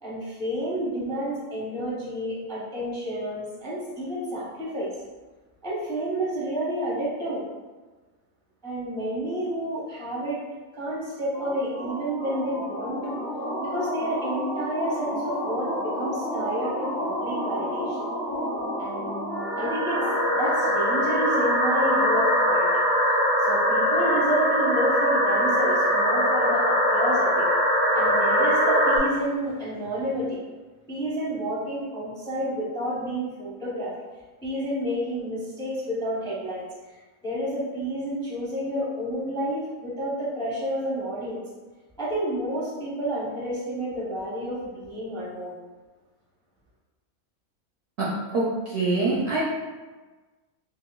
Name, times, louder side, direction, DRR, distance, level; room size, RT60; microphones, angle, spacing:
voice 1, 0.0-4.9 5.6-7.4 8.6-10.4 10.7-13.2 13.6-18.0 18.8-20.0 20.4-22.7 23.4-27.5 27.9-30.4 30.9-33.9 34.4-36.7 37.2-41.4 42.0-45.5, right 1 dB, 5° left, -7 dB, 0.5 m, -30 dB
sound 1, 11.3-29.0, equal, 50° left, 2.0 m, -24 dB
voice 2, 48.0-49.4, right 2 dB, 65° right, -5 dB, 0.7 m, -25 dB
4.9 x 2.2 x 2.3 m, 1.3 s
omnidirectional pair, 1.5 m